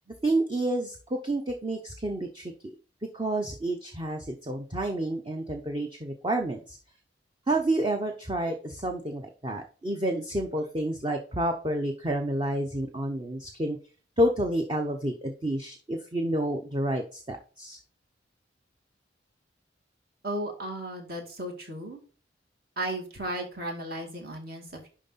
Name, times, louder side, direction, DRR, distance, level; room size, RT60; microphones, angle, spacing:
voice 1, 0.2-2.7 3.1-6.8 7.5-13.8 14.2-17.8, right 1 dB, 25° right, 4 dB, 0.8 m, -29 dB
voice 2, 20.2-22.0 22.8-24.9, right 1 dB, 55° right, 2 dB, 2.4 m, -35 dB
11.0 x 3.7 x 4.1 m, 0.37 s
head